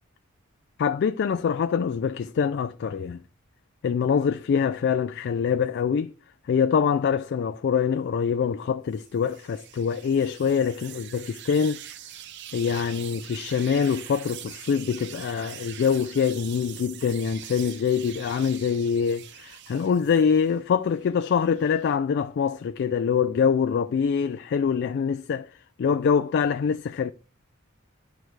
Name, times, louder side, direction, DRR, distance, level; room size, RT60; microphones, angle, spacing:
voice 1, 0.8-3.2 3.8-6.1 6.5-11.8 12.5-25.5 25.8-27.1, left 6 dB, 55° left, 0.3 m, -24 dB
sound 1, 8.9-20.6 21.0-22.0, right 11 dB, 55° right, 0.4 m, -43 dB
11.5 x 4.6 x 3.2 m
head